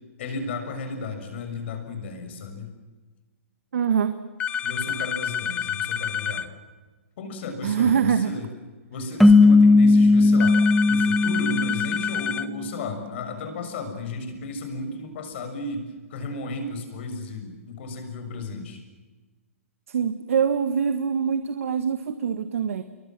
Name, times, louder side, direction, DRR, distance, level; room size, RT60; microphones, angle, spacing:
voice 1, 0.2-2.7 4.6-6.5 7.2-8.5 8.9-10.6 10.9-18.8, left 2 dB, 55° left, 6 dB, 7.0 m, -34 dB
voice 2, 3.7-4.2 7.6-8.3 19.9-22.8, right 7 dB, 75° right, 10 dB, 1.6 m, -24 dB
sound 1, 4.4-6.5 10.4-12.5, left 8 dB, 15° left, 0.8 m, -28 dB
sound 2, 9.2-12.5, left 3 dB, ahead, 1.0 m, -17 dB
28.5 x 23.5 x 7.6 m, 1.3 s
hypercardioid pair, 150°, 8 cm